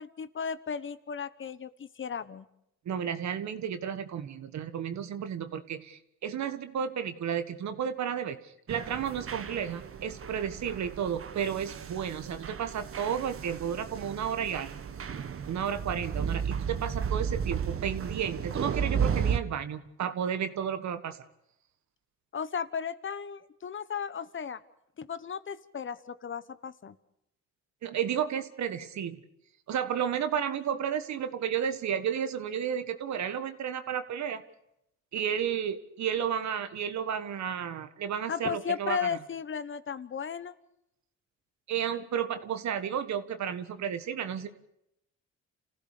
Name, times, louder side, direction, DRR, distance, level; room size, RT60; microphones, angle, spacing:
voice 1, 0.0-2.5 22.3-24.6 25.0-27.0 38.3-40.5, left 7 dB, 40° left, 14 dB, 1.2 m, -35 dB
voice 2, 2.9-14.7 15.5-21.2 27.8-29.2 29.7-34.4 35.1-39.1 41.7-44.5, right 8 dB, 65° right, 10 dB, 1.6 m, -32 dB
sound 1, 8.7-19.4, right 7 dB, 45° right, 1.5 m, -34 dB
29.0 x 15.5 x 6.7 m, 0.79 s
cardioid pair, 90°, 30 cm